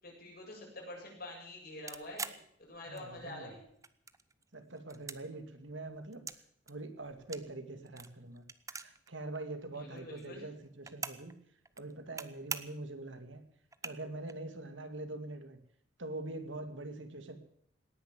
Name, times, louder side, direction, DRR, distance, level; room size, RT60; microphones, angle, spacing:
voice 1, 0.0-2.3 2.6-3.6 9.7-10.4, left 1 dB, 55° left, -1 dB, 7.9 m, -46 dB
sound 1, 1.9-3.3 3.6-4.4 4.8-6.4 6.7-9.1 9.3-9.4 9.6-11.3 11.6-12.2 12.5-12.9 13.3-13.4 13.7-14.3, right 5 dB, 15° right, 0.8 m, -43 dB
voice 2, 2.9-3.5 4.5-6.3 6.7-8.4 8.7-11.3 11.8-13.4 13.8-15.6 16.0-17.4, right 2 dB, 80° right, 8 dB, 2.3 m, -44 dB
18.5 x 10.5 x 7.5 m, 0.67 s
head